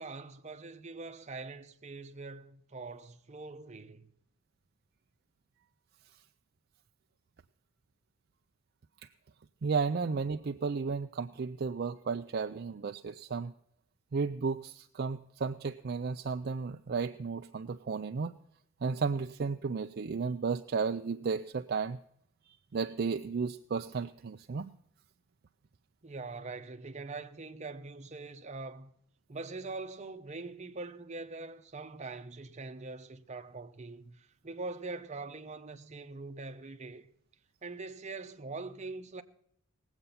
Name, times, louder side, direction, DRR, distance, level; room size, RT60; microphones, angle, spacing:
voice 1, 0.0-4.1 26.0-28.9 29.3-37.1 37.6-39.2, right 3 dB, 35° right, 0.9 m, -43 dB
voice 2, 9.6-13.5 14.1-18.4 18.8-22.0 22.7-24.7, right 5 dB, 50° right, 0.4 m, -33 dB
19.0 x 8.1 x 5.6 m
head